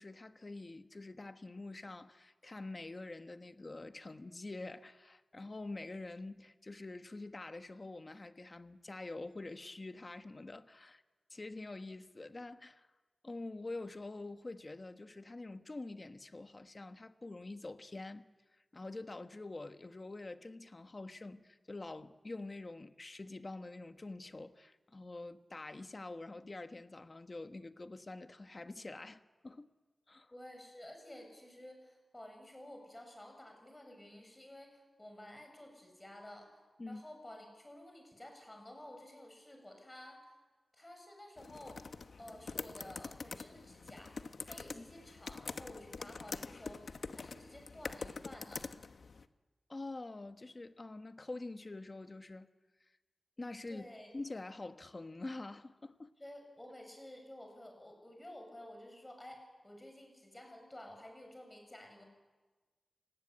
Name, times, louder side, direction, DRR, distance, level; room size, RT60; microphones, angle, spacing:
voice 1, 0.0-11.0 11.3-12.9 13.2-18.3 18.7-29.7 30.1-30.3 36.8-37.0 44.7-44.9 49.7-52.5 53.4-53.9 54.1-56.1, left 2 dB, 30° left, 1.2 m, -46 dB
voice 2, 30.3-36.5 36.9-40.2 40.7-41.8 42.2-44.2 44.4-48.7 53.7-54.1 56.2-62.0, left 1 dB, 15° left, 7.2 m, -52 dB
sound 1, 41.4-49.3, left 4 dB, 65° left, 1.0 m, -45 dB
29.0 x 19.0 x 9.9 m
wide cardioid pair, 130°, 0 cm